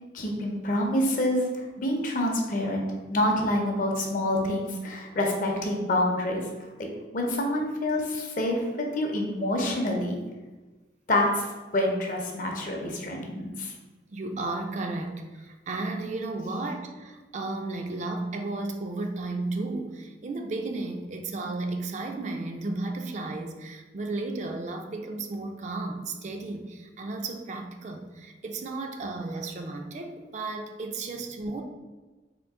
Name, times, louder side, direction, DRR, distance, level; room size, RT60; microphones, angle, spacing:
voice 1, 0.1-6.4 7.1-8.6 8.9-10.2 11.1-11.5 11.7-13.7, left 1 dB, 45° left, 1 dB, 0.6 m, -27 dB
voice 2, 14.1-31.6, right 2 dB, 40° right, 4 dB, 0.4 m, -34 dB
3.7 x 2.6 x 3.6 m, 1.2 s
head